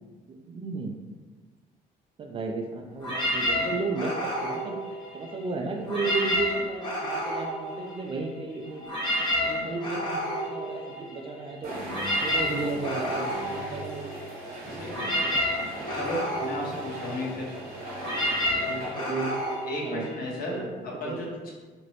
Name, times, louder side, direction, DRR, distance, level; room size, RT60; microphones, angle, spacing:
voice 1, 0.3-1.0 2.2-4.8 5.1-8.9 9.4-11.7 12.2-14.1 14.6-15.4 18.5-19.4 19.8-20.1 20.5-21.2, right 3 dB, 30° right, 2 dB, 0.3 m, -34 dB
sound 1, 3.0-5.4 5.8-8.3 8.6-20.6, equal, 25° left, 1.2 m, -30 dB
sound 2, 11.6-19.8, right 1 dB, 60° right, 1.0 m, -39 dB
voice 2, 15.9-17.5 19.7-21.5, left 1 dB, 60° left, -3 dB, 0.9 m, -34 dB
2.9 x 2.5 x 3.1 m, 1.4 s
cardioid pair, 110°, 17 cm